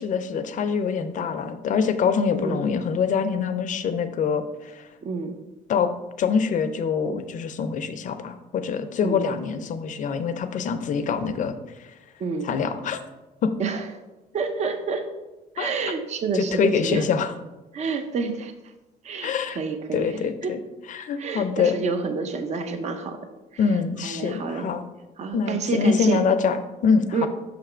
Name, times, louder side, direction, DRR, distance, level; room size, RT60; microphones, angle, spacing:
voice 1, 0.0-4.9 5.7-5.9 6.2-11.9 12.4-13.0 13.4-13.5 15.6-15.7 16.3-17.3 19.2-19.6 19.9-20.6 20.9-21.8 23.6-24.8 25.3-27.3, left 6 dB, 50° left, 9 dB, 0.5 m, -24 dB
voice 2, 2.3-2.6 5.0-5.3 9.0-9.3 12.2-12.5 13.6-13.9 14.3-15.1 15.5-17.0 17.7-18.5 19.0-20.6 21.2-23.6 24.0-24.7 25.2-26.2 27.1-27.3, right 5 dB, 40° right, 7 dB, 0.6 m, -29 dB
5.7 x 3.3 x 4.9 m, 1.1 s
cardioid pair, 110°, 17 cm